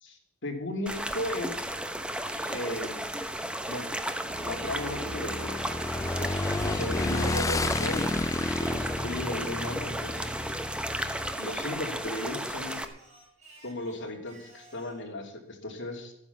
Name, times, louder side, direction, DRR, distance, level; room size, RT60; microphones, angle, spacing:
voice 1, 0.0-1.7 2.5-3.0 3.7-3.9 4.2-5.6 6.2-10.4 11.4-12.8 13.6-16.1, left 1 dB, 60° left, 1 dB, 2.9 m, -36 dB
sound 1, 0.9-12.9, right 1 dB, 5° right, 0.9 m, -34 dB
Singing, 2.2-5.1 5.6-8.6 9.1-11.8 12.1-15.0, right 2 dB, 35° right, 5.4 m, -53 dB
Motorcycle / Engine, 4.3-11.3, left 2 dB, 15° left, 0.4 m, -32 dB
13.5 x 9.7 x 7.2 m, 0.77 s
head